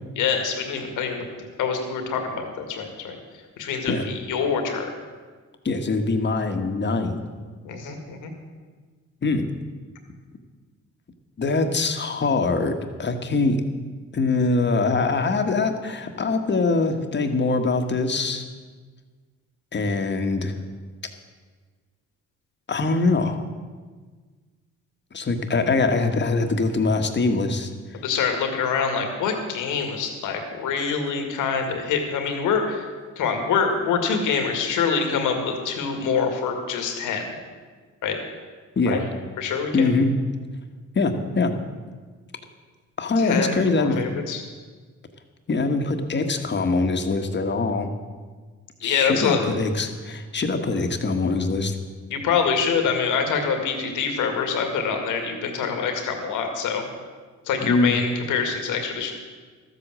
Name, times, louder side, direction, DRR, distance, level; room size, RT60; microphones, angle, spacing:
voice 1, 0.2-1.3 1.6-3.2 3.6-4.9 7.6-8.3 28.0-32.8 33.2-37.2 38.0-38.2 38.9-39.0 39.4-39.9 43.2-44.4 48.8-49.4 52.1-56.8 57.5-59.1, left 6 dB, 90° left, 4 dB, 2.1 m, -25 dB
voice 2, 5.6-7.2 9.2-9.5 11.4-13.6 14.1-18.5 19.7-20.5 22.7-23.4 25.1-27.7 38.8-39.0 39.7-40.2 40.9-41.5 43.0-44.1 45.5-47.9 48.8-51.8 57.6-58.0, left 3 dB, 35° left, 6 dB, 1.5 m, -23 dB
13.0 x 8.3 x 7.5 m, 1.5 s
cardioid pair, 90°, 30 cm